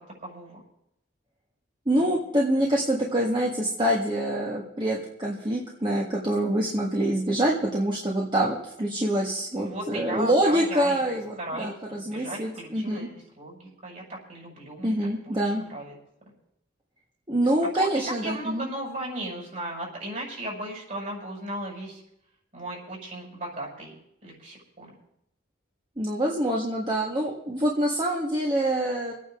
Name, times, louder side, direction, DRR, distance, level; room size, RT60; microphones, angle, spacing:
voice 1, 0.2-0.6 9.6-11.0 11.4-14.9 15.2-15.9 17.6-22.0 22.5-23.9 24.2-24.9, right 1 dB, 45° right, -3 dB, 6.1 m, -36 dB
voice 2, 1.9-13.0 14.8-15.6 17.3-18.7 26.0-29.1, right 1 dB, 25° right, -3 dB, 1.8 m, -25 dB
26.0 x 9.3 x 3.8 m, 0.78 s
head